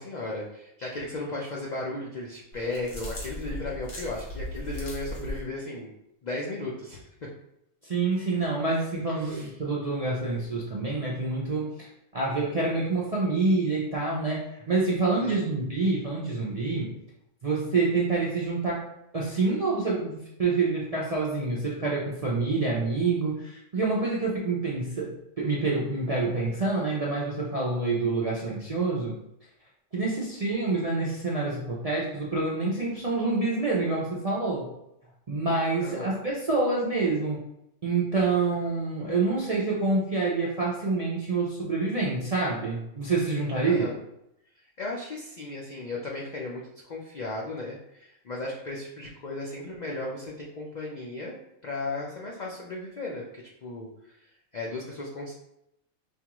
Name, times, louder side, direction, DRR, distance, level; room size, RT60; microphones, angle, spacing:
voice 1, 0.0-5.9 6.2-7.1 9.1-9.5 15.2-15.4 35.8-36.1 43.6-44.0 44.8-51.4 51.6-54.2 54.5-55.3, left 2 dB, 65° left, -3 dB, 0.4 m, -35 dB
sound 1, 2.5-5.4, equal, 90° left, 1.7 m, -37 dB
voice 2, 7.8-11.7 12.1-17.0 17.4-18.8 19.1-29.2 29.9-34.7 35.3-37.4 37.8-43.9, right 3 dB, 50° right, -6 dB, 0.4 m, -27 dB
5.3 x 2.4 x 2.9 m, 0.82 s
omnidirectional pair, 1.5 m